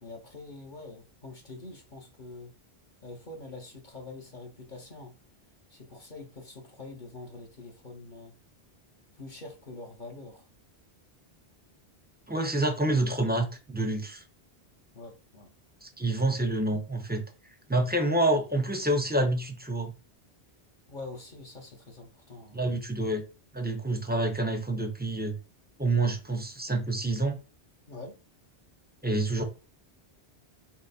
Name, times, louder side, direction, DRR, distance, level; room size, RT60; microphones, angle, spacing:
voice 1, 0.0-2.5 3.0-5.1 5.7-8.3 9.2-10.5 14.9-15.5 20.9-22.6 27.9-28.2, left 2 dB, 50° left, 1 dB, 1.0 m, -45 dB
voice 2, 12.3-14.2 15.8-17.2 17.7-19.9 22.5-23.2 23.5-25.4 25.8-27.4 29.0-29.4, right 2 dB, 10° right, 5 dB, 0.5 m, -27 dB
5.8 x 2.1 x 4.1 m, 0.32 s
omnidirectional pair, 1.1 m